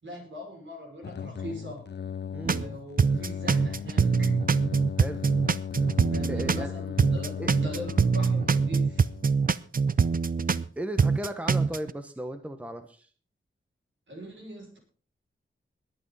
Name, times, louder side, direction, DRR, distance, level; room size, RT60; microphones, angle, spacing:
voice 1, 0.0-1.9 2.4-4.3 6.0-9.0 14.1-14.8, equal, 65° right, 2 dB, 6.1 m, -41 dB
sound 1, 1.0-9.6, left 8 dB, 55° left, 0.5 m, -37 dB
sound 2, 2.4-2.7 3.0-6.7 7.0-10.7 11.0-11.9, right 5 dB, 45° right, 0.6 m, -24 dB
voice 2, 6.3-6.7 7.4-7.5 10.8-13.1, equal, 5° right, 8 dB, 1.0 m, -35 dB
21.0 x 8.9 x 4.1 m, 0.41 s
wide cardioid pair, 95°, 21 cm